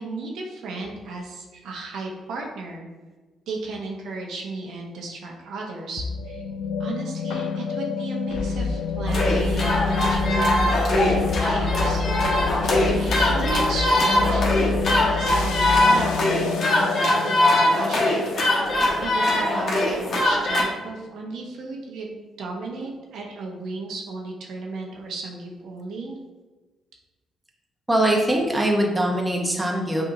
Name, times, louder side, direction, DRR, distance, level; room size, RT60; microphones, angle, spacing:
voice 1, 0.0-2.9 3.5-6.4 6.8-12.5 13.0-18.2 19.0-26.2, right 3 dB, 75° right, -1 dB, 0.8 m, -35 dB
sound 1, 6.0-20.4, left 6 dB, 90° left, 0.3 m, -30 dB
sound 2, 8.3-15.8, left 2 dB, 30° left, 1.1 m, -28 dB
sound 3, 9.1-20.6, left 1 dB, 55° left, 1.0 m, -22 dB
voice 2, 27.9-30.1, right 1 dB, 10° right, -1 dB, 0.8 m, -22 dB
5.6 x 2.7 x 2.6 m, 1.2 s
cardioid pair, 90°, 0 cm